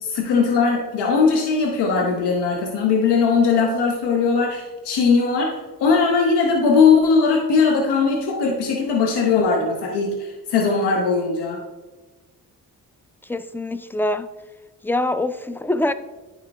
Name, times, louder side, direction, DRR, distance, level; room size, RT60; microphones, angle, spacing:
voice 1, 0.0-11.6, left 5 dB, 90° left, 0.8 m, -19 dB
voice 2, 13.3-14.3 14.8-15.9, left 1 dB, 5° left, 0.3 m, -24 dB
9.6 x 4.7 x 2.2 m
supercardioid pair, 50°, 40 cm